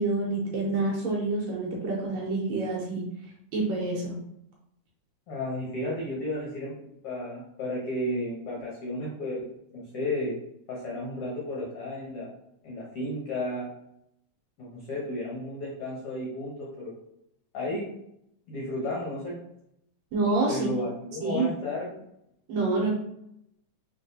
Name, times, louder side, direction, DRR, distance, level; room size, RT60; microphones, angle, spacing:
voice 1, 0.0-3.1 3.5-4.2 20.1-20.7 21.2-21.5 22.5-22.9, right 3 dB, 70° right, -2 dB, 1.8 m, -27 dB
voice 2, 5.3-9.4 9.7-10.3 10.7-12.3 12.6-13.7 14.6-16.9 17.5-17.9 18.5-19.4 20.5-22.0 22.9-23.0, left 1 dB, 65° left, -4 dB, 1.5 m, -33 dB
4.7 x 3.8 x 2.7 m, 0.78 s
omnidirectional pair, 3.6 m